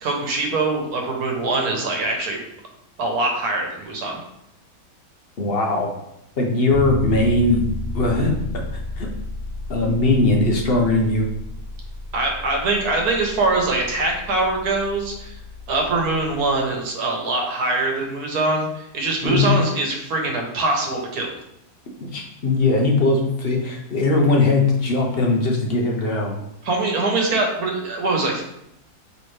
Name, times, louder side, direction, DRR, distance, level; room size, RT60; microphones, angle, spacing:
voice 1, 0.0-2.4 3.0-4.2 12.1-15.4 15.7-21.3 26.6-28.4, right 2 dB, 75° right, 1 dB, 1.4 m, -23 dB
voice 2, 5.4-5.9 6.4-7.6 7.9-8.6 9.0-9.1 9.7-11.3 19.2-19.5 22.0-26.4, left 2 dB, 50° left, 0 dB, 0.8 m, -20 dB
Bass guitar, 6.7-16.5, left 1 dB, 5° right, 0.8 m, -32 dB
4.4 x 3.4 x 3.2 m, 0.80 s
omnidirectional pair, 1.6 m